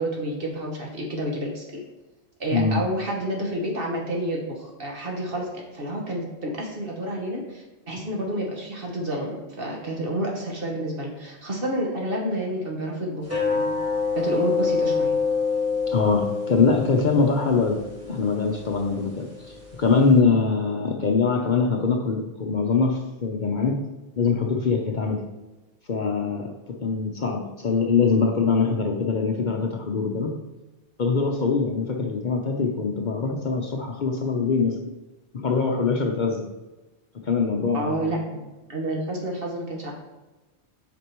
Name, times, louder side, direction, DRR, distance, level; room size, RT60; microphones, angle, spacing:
voice 1, 0.0-1.8 2.4-13.7 14.1-15.1 37.7-39.9, right 1 dB, 55° right, -2 dB, 1.7 m, -29 dB
voice 2, 2.5-2.8 15.9-17.8 18.1-23.8 24.2-25.2 25.9-26.5 26.8-30.3 31.0-34.8 35.3-36.5 37.2-38.1, left 4 dB, 50° left, 2 dB, 0.8 m, -23 dB
sound 1, 13.2-20.2, left 5 dB, 15° right, 1.4 m, -27 dB
8.3 x 5.2 x 3.0 m, 1.1 s
omnidirectional pair, 1.2 m